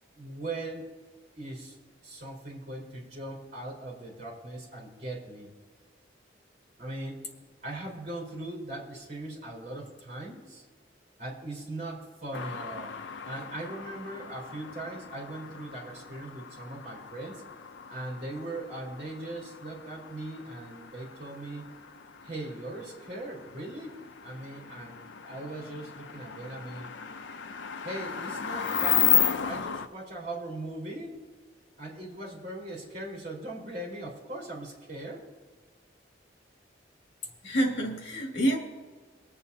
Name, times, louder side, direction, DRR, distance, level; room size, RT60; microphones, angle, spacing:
voice 1, 0.1-0.9 1.3-1.8 2.0-5.5 6.8-7.2 7.6-10.6 11.2-12.9 13.2-17.4 17.9-21.7 22.2-25.0 25.2-26.9 27.8-31.2 31.8-35.3, right 2 dB, 40° right, -2 dB, 4.3 m, -39 dB
sound 1, 12.3-29.9, left 9 dB, 85° left, 0.6 m, -34 dB
voice 2, 37.4-38.6, right 1 dB, 65° left, 0 dB, 2.3 m, -27 dB
24.5 x 8.8 x 2.8 m, 1.4 s
head